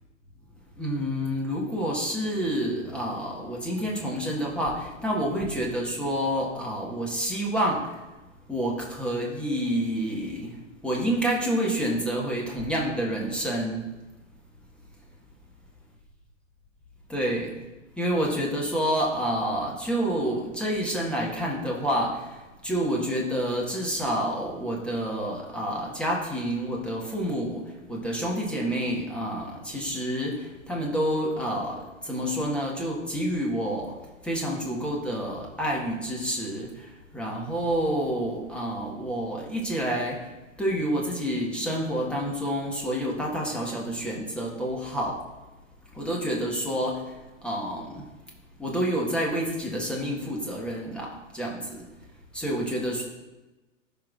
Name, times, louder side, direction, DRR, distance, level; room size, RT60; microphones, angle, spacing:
voice 1, 0.8-8.0 8.5-10.6 10.8-13.8 17.1-17.6 18.0-34.0 34.2-40.3 40.6-45.2 45.9-48.0 48.6-51.9 52.3-53.0, equal, 5° left, -3 dB, 1.5 m, -28 dB
15.5 x 5.4 x 2.5 m, 1.1 s
figure-of-eight pair, 110°, 39 cm